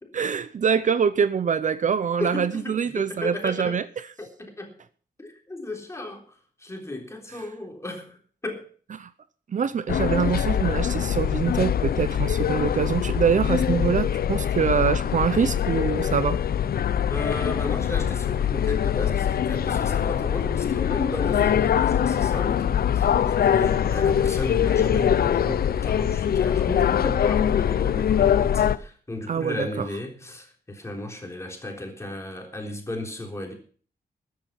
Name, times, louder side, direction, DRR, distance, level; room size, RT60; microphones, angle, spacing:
voice 1, 0.1-3.8 9.0-9.1 9.5-16.4 29.3-29.7, right 7 dB, 50° right, 0.6 m, -24 dB
voice 2, 1.9-3.8 4.2-4.7 5.2-8.2 8.4-8.6 17.1-33.5, left 2 dB, 15° left, 3.6 m, -35 dB
sound 1, 9.9-28.8, left 9 dB, 70° left, 0.6 m, -23 dB
13.5 x 10.5 x 5.8 m
wide cardioid pair, 140°, 16 cm